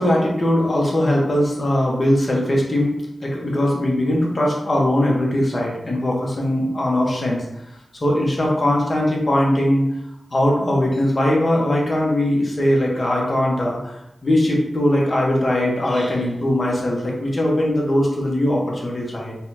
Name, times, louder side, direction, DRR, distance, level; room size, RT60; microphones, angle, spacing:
voice 1, 0.0-2.9 3.2-7.4 8.0-9.9 10.3-14.0 14.2-19.3, left 1 dB, 45° left, -2 dB, 1.2 m, -20 dB
4.1 x 2.4 x 4.2 m, 0.81 s
wide cardioid pair, 75°, 0 cm